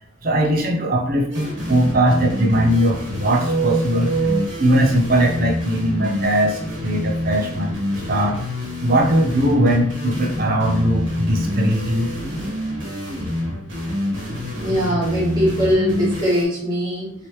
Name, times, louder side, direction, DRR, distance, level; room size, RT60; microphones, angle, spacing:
voice 1, 0.2-8.4 8.8-12.1, right 1 dB, 45° right, -1 dB, 0.6 m, -19 dB
sound 1, 1.3-16.4, left 1 dB, 60° right, 1.2 m, -27 dB
voice 2, 14.6-17.1, equal, 20° right, -7 dB, 1.3 m, -21 dB
3.1 x 2.9 x 2.9 m, 0.68 s
head